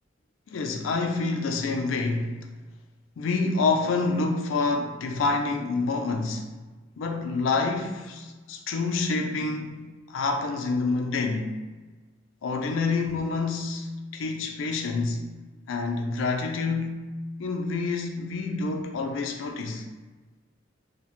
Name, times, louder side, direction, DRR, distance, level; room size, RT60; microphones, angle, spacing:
voice 1, 0.5-2.3 3.2-6.5 7.0-11.6 12.4-15.2 15.7-17.1 17.4-19.9, left 3 dB, 85° left, 0.4 m, -27 dB
2.7 x 2.1 x 2.9 m
head